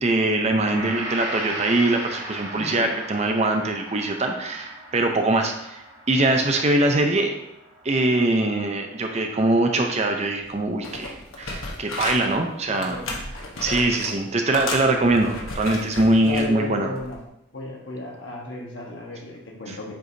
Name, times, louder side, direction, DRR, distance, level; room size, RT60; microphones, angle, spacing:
voice 1, 0.0-5.8 6.1-7.3 7.8-13.0 13.6-16.9 19.7-19.8, right 2 dB, 30° right, 4 dB, 0.6 m, -22 dB
Gong, 0.6-9.1 9.4-9.6, right 1 dB, 80° right, 1.8 m, -37 dB
voice 2, 2.5-2.9 12.7-13.1 16.2-17.2 17.5-19.9, left 1 dB, 60° left, -1 dB, 1.4 m, -34 dB
sound 1, 10.4-10.6 10.8-12.4 12.8-14.2 14.5-16.5 17.0-17.2, left 2 dB, 85° left, 1.1 m, -33 dB
7.6 x 4.8 x 2.7 m, 0.81 s
head